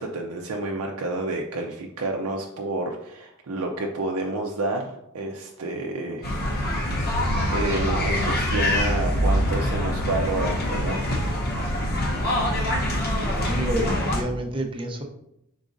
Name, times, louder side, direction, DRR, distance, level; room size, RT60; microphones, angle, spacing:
voice 1, 0.0-6.9 7.5-11.0, right 2 dB, 70° right, 1 dB, 0.5 m, -29 dB
sound 1, 6.2-14.2, equal, 45° left, 0.8 m, -24 dB
voice 2, 13.3-15.0, right 1 dB, 25° right, 2 dB, 0.5 m, -29 dB
5.0 x 3.9 x 2.5 m, 0.80 s
head